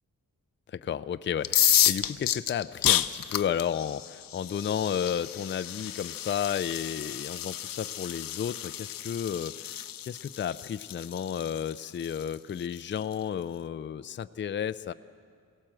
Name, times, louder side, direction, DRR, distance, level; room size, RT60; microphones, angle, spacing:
voice 1, 0.7-14.9, left 8 dB, 35° left, 12 dB, 0.4 m, -32 dB
sound 1, 1.4-13.1, left 11 dB, 80° left, 0.7 m, -30 dB
23.0 x 17.0 x 7.6 m, 2.3 s
wide cardioid pair, 130°, 34 cm